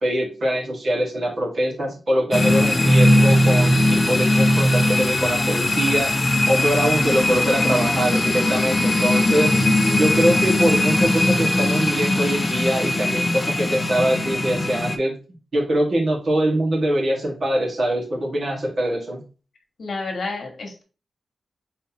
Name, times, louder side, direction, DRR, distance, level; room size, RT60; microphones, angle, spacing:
voice 1, 0.0-6.1 6.5-9.5 10.0-15.2 15.5-19.2, right 1 dB, 55° right, -2 dB, 1.8 m, -23 dB
sound 1, 2.3-15.0, left 1 dB, 30° left, 0.5 m, -19 dB
voice 2, 19.8-20.8, left 3 dB, 60° left, 2 dB, 1.4 m, -30 dB
4.2 x 3.9 x 2.9 m, 0.35 s
wide cardioid pair, 110°, 0 cm